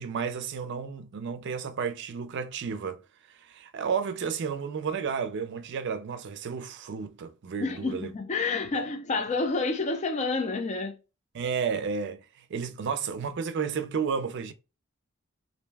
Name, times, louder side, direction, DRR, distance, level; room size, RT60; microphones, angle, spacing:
voice 1, 0.0-3.0 3.4-8.1 8.7-8.9 11.3-14.5, right 6 dB, 55° right, 0.4 m, -32 dB
voice 2, 7.6-11.0, left 3 dB, 35° left, 0.4 m, -29 dB
2.5 x 2.0 x 3.3 m
head